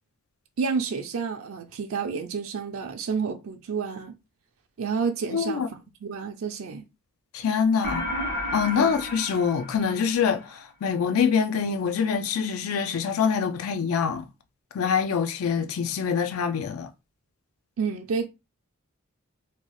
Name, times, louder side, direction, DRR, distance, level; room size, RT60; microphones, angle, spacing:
voice 1, 0.6-4.1 4.8-6.8 8.8-8.9 17.8-18.3, right 5 dB, 70° right, 0.4 m, -30 dB
voice 2, 5.3-5.7 7.3-8.2 8.5-14.2 14.7-16.9, left 6 dB, 80° left, 0.4 m, -25 dB
sound 1, 7.8-10.5, left 1 dB, 55° left, 1.2 m, -32 dB
2.8 x 2.2 x 3.0 m
head